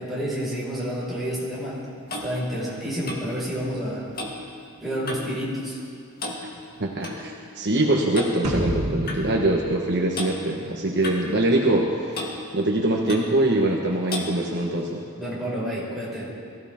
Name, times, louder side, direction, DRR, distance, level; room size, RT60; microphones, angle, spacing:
voice 1, 0.0-1.8 2.2-4.0 4.8-5.8 15.2-16.3, equal, ahead, -8 dB, 5.3 m, -29 dB
Clock, 1.5-5.4 5.7-5.9 6.2-7.2 8.1-8.4 9.1-9.2 10.1-10.3 11.0-11.9 12.1-12.4 13.1-13.3 14.1-14.3, left 2 dB, 45° left, 2.1 m, -35 dB
voice 2, 6.8-15.0, right 1 dB, 50° right, 0 dB, 1.3 m, -23 dB
sound 1, 8.4-10.9, right 1 dB, 70° right, 2.3 m, -30 dB
22.5 x 16.0 x 3.7 m, 2.3 s
head